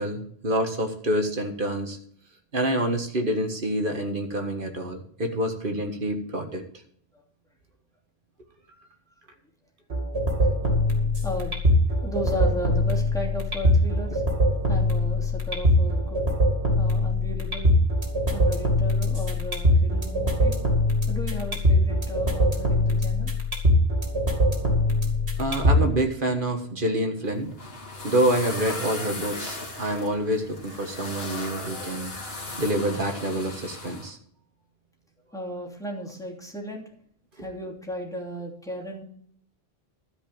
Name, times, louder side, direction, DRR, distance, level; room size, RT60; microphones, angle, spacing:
voice 1, 0.0-2.0 2.5-6.6 12.0-12.1 25.4-27.5 28.0-32.1 32.6-34.2, right 1 dB, 55° right, 4 dB, 1.8 m, -27 dB
sound 1, 9.9-25.9, left 1 dB, 90° right, 2.7 m, -23 dB
voice 2, 11.2-11.6 12.0-14.2 14.7-16.2 16.8-17.7 18.3-20.6 21.1-23.3 35.3-36.8 37.4-39.0, equal, 5° left, -1 dB, 2.8 m, -35 dB
sound 2, 27.2-34.1, left 2 dB, 70° left, 2.4 m, -37 dB
12.5 x 5.2 x 8.8 m, 0.63 s
omnidirectional pair, 1.1 m